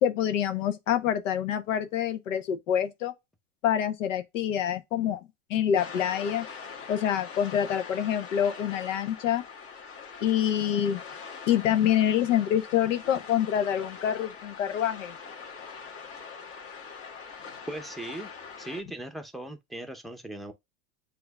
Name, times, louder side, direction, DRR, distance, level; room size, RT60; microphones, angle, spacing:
voice 1, 0.0-3.1 3.6-5.2 5.5-6.5 6.9-9.4 10.2-11.0 11.5-15.1, left 10 dB, 85° left, 1.0 m, -26 dB
sound 1, 5.7-18.8, left 5 dB, 40° left, 1.6 m, -43 dB
voice 2, 17.7-18.3 18.6-20.5, right 1 dB, ahead, 0.7 m, -38 dB
7.8 x 2.8 x 2.3 m
supercardioid pair, 115°, 37 cm